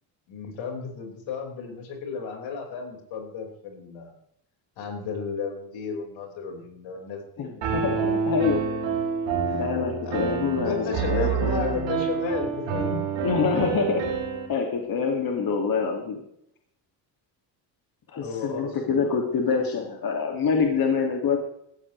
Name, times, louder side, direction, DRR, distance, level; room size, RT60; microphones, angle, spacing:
voice 1, 0.3-4.1 4.8-7.5 9.4-10.2 10.7-13.0 18.2-19.1, left 4 dB, 80° left, 1 dB, 5.5 m, -33 dB
voice 2, 7.4-8.6 9.6-11.8 13.2-14.1 14.5-16.2 18.1-21.4, left 5 dB, 50° left, 2 dB, 2.6 m, -26 dB
Piano, 7.6-14.5, right 6 dB, 75° right, 4.3 m, -27 dB
18.0 x 13.5 x 3.4 m, 0.75 s
cardioid pair, 105°, 45 cm